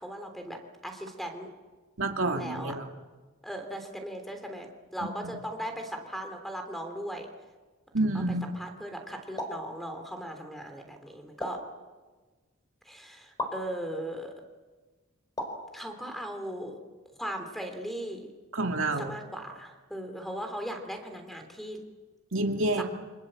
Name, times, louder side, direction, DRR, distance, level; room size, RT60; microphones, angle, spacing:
voice 1, 0.0-1.5 2.4-2.8 3.4-7.3 8.5-11.6 12.8-14.3 15.7-16.8 17.2-18.3 19.0-21.8 22.7-22.8, equal, ahead, 5 dB, 3.3 m, -38 dB
voice 2, 2.0-2.9 5.2-5.4 7.9-8.5 18.5-19.1 22.3-22.8, right 2 dB, 80° right, 3 dB, 2.4 m, -28 dB
sound 1, 9.4-9.7 11.4-11.7 13.4-13.6 15.4-15.7, left 1 dB, 20° left, 4.8 m, -34 dB
28.0 x 25.5 x 7.7 m, 1.3 s
head